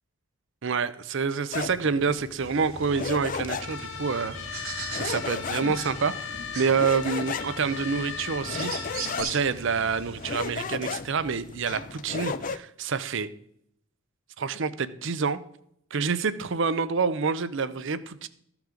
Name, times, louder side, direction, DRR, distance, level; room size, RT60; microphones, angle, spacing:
voice 1, 0.6-4.7 4.9-8.7 9.2-13.3 14.4-15.4 15.9-18.3, right 5 dB, 55° right, 14 dB, 0.5 m, -27 dB
sound 1, 1.5-12.6, left 5 dB, 35° left, 0.4 m, -36 dB
sound 2, 2.4-10.5, right 4 dB, 75° right, 2.8 m, -40 dB
sound 3, 3.6-9.2, left 6 dB, 55° left, 0.8 m, -38 dB
14.5 x 6.0 x 3.8 m, 0.70 s
head